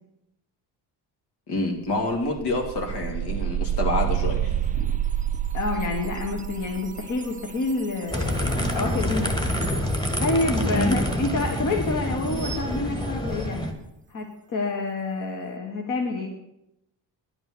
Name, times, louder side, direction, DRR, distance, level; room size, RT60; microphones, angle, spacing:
voice 1, 1.5-4.5 10.7-11.0, left 2 dB, 70° left, 2 dB, 2.4 m, -27 dB
sound 1, 1.6-1.7 2.0-8.8, right 10 dB, 20° right, 0.4 m, -29 dB
voice 2, 5.5-9.5 9.7-13.6 14.1-16.3, left 3 dB, 50° left, 1 dB, 1.5 m, -28 dB
sound 2, 8.1-13.7, equal, 10° left, 1.5 m, -27 dB
10.5 x 8.9 x 6.2 m, 0.84 s
cardioid pair, 125°, 41 cm